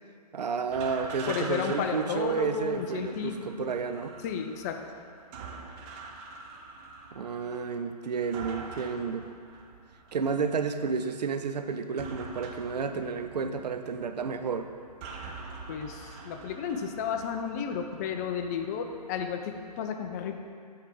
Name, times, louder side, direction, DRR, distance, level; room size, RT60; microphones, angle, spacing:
voice 1, 0.3-4.1 7.1-9.3 10.1-14.7, right 5 dB, 80° right, 8 dB, 0.6 m, -31 dB
sound 1, 0.7-19.8, right 3 dB, 25° right, 0.5 m, -45 dB
voice 2, 1.3-3.7 4.2-4.8 15.7-20.4, left 7 dB, 25° left, 5 dB, 0.4 m, -33 dB
7.9 x 3.5 x 5.0 m, 2.2 s
hypercardioid pair, 140°, 21 cm